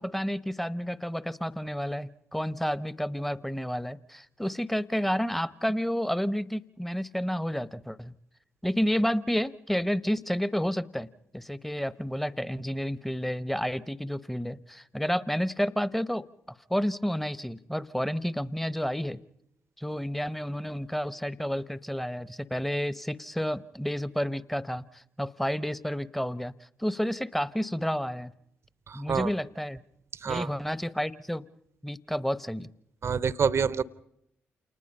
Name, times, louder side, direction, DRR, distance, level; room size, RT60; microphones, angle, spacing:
voice 1, 0.0-8.1 8.6-11.1 11.3-19.2 19.8-26.5 26.8-28.3 28.9-29.8 30.2-31.4 31.8-32.7, equal, 5° left, 18 dB, 0.9 m, -30 dB
voice 2, 28.9-29.3 30.2-30.5 33.0-33.8, right 6 dB, 50° right, 19 dB, 0.7 m, -27 dB
28.5 x 19.5 x 5.5 m, 0.77 s
hypercardioid pair, 40°, 6 cm